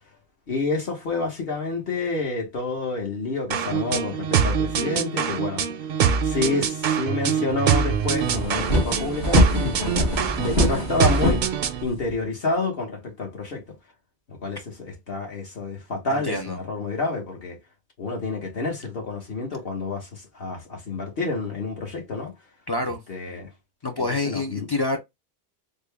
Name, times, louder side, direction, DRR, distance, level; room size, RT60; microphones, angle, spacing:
voice 1, 0.5-5.6 6.2-9.8 10.3-11.4 11.8-13.6 14.3-17.6 18.0-22.3 22.8-23.5 24.0-24.7, left 3 dB, 65° left, 1.5 m, -29 dB
sound 1, 3.5-11.8, right 7 dB, 60° right, 0.6 m, -24 dB
sound 2, 7.5-7.6 7.9-12.1, left 1 dB, 90° left, 1.5 m, -24 dB
voice 2, 16.1-16.6 22.7-23.0 23.8-25.0, left 2 dB, 35° left, 0.4 m, -27 dB
3.8 x 2.2 x 3.3 m
omnidirectional pair, 1.1 m